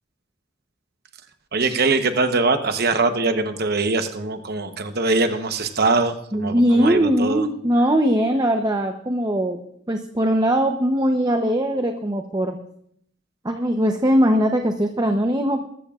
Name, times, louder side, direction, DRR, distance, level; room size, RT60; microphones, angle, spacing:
voice 1, 1.5-7.5, right 3 dB, 50° right, 8 dB, 1.0 m, -22 dB
voice 2, 6.3-9.6 9.9-12.6 13.4-15.7, equal, 20° right, 4 dB, 0.8 m, -20 dB
21.5 x 14.0 x 2.4 m, 0.70 s
head